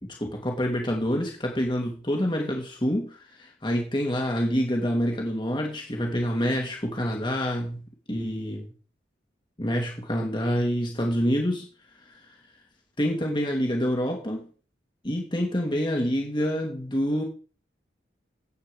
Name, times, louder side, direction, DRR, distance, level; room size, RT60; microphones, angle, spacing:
voice 1, 0.0-7.8 8.1-8.7 9.6-11.7 13.0-14.5 15.0-17.2, equal, 25° left, 1 dB, 2.4 m, -27 dB
16.0 x 8.3 x 5.1 m, 0.39 s
head